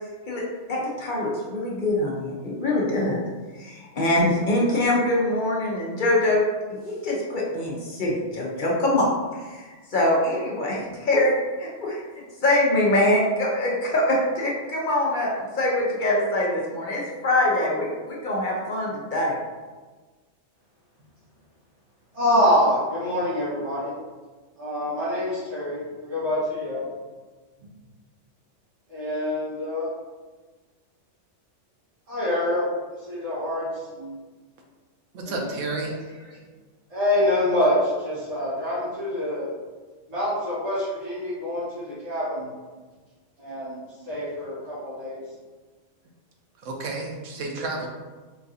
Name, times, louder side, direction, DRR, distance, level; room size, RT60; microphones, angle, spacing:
voice 1, 0.7-3.2 3.5-6.4 6.7-12.0 12.4-19.3, left 1 dB, 50° left, -4 dB, 0.7 m, -24 dB
voice 2, 22.1-23.9 24.6-26.9 27.6-27.7 28.9-29.9 32.1-32.6 33.1-34.1 35.2-35.6 36.9-39.5 40.1-42.5 43.4-45.2, left 1 dB, 70° right, -11 dB, 1.6 m, -26 dB
voice 3, 35.1-36.0 46.6-47.9, right 3 dB, 85° right, 1 dB, 1.0 m, -31 dB
4.0 x 2.5 x 2.6 m, 1.3 s
omnidirectional pair, 1.3 m